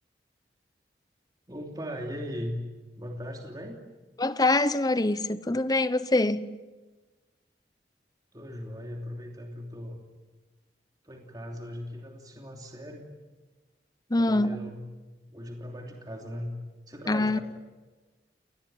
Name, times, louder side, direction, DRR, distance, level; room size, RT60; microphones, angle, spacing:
voice 1, 1.5-2.6 3.0-3.8 8.3-10.0 11.0-13.1 14.2-14.8 15.3-16.5 16.9-17.4, equal, 20° right, 3.0 m, -38 dB
voice 2, 4.2-6.5 14.1-14.6 17.1-17.4, left 2 dB, 20° left, 0.9 m, -24 dB
28.5 x 20.0 x 9.4 m
head